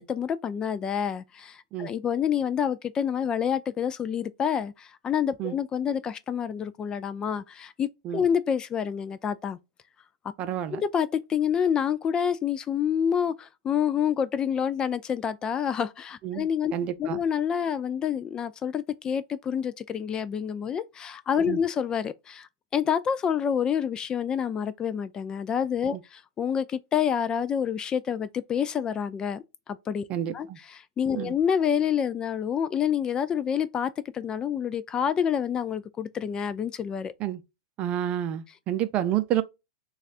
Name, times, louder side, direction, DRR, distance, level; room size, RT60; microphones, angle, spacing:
voice 1, 0.0-9.6 10.7-16.7 17.0-30.0 30.3-37.1, left 8 dB, 25° left, 0.4 m, -28 dB
voice 2, 10.4-10.8 16.2-17.2 21.4-21.6 25.9-26.0 30.1-30.6 31.1-31.3 37.2-37.4 37.8-39.4, right 11 dB, 35° right, 0.6 m, -29 dB
6.3 x 2.4 x 2.5 m
hypercardioid pair, 115°, 3 cm